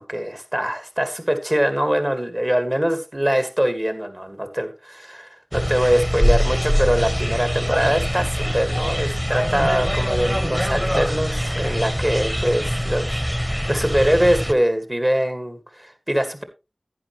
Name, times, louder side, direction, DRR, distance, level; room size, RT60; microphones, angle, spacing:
voice 1, 0.0-16.4, equal, 30° right, 9 dB, 2.2 m, -23 dB
sound 1, 5.5-14.5, equal, 10° right, 1.3 m, -23 dB
11.0 x 9.7 x 3.3 m, 0.27 s
wide cardioid pair, 45°, 0 cm